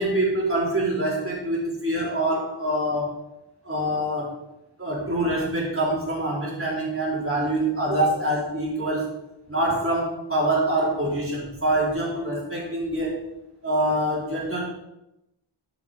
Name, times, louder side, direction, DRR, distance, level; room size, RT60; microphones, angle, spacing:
voice 1, 0.0-3.2 3.6-4.3 4.8-9.1 9.5-13.2 13.6-14.6, right 1 dB, 25° right, -6 dB, 4.7 m, -25 dB
11.5 x 8.7 x 3.9 m, 0.89 s
wide cardioid pair, 70°, 48 cm